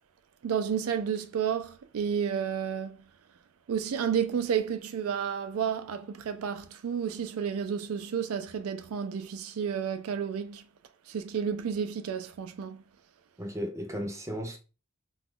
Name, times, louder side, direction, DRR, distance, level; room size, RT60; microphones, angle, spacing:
voice 1, 0.4-3.0 3.7-10.7 11.1-12.8, right 7 dB, 90° right, 0.4 m, -31 dB
voice 2, 13.4-14.6, equal, 15° right, 0.6 m, -35 dB
2.9 x 2.3 x 3.6 m
head